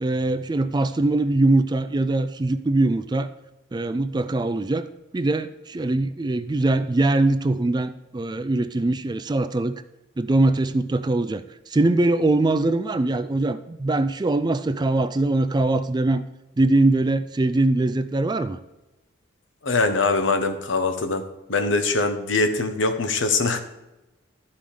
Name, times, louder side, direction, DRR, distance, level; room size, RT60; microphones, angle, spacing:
voice 1, 0.0-3.3 3.7-4.9 5.1-9.8 10.2-16.2 16.6-18.6, right 2 dB, 20° right, 12 dB, 0.4 m, -22 dB
voice 2, 19.6-21.2 21.5-23.6, left 3 dB, 70° left, 8 dB, 1.0 m, -22 dB
12.5 x 5.7 x 5.0 m, 0.97 s
head